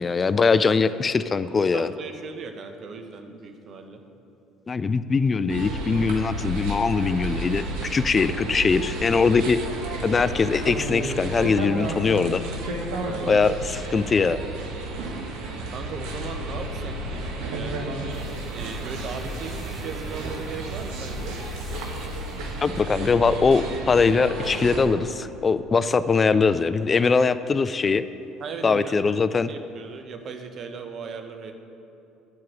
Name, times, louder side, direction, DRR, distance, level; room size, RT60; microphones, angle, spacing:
voice 1, 0.0-1.9 4.7-9.6 10.0-12.4 13.3-14.4 22.6-28.0 28.6-29.5, left 4 dB, 35° left, 13 dB, 0.3 m, -21 dB
voice 2, 1.7-4.0 12.9-13.4 15.7-17.9 18.5-21.4 28.4-29.0 29.5-31.5, right 5 dB, 50° right, 6 dB, 0.9 m, -38 dB
sound 1, 5.5-24.9, right 1 dB, 75° right, 1.1 m, -32 dB
sound 2, 18.1-24.6 25.2-25.3, right 1 dB, ahead, 0.6 m, -45 dB
10.5 x 4.7 x 6.1 m, 2.8 s
hypercardioid pair, 65°, 0 cm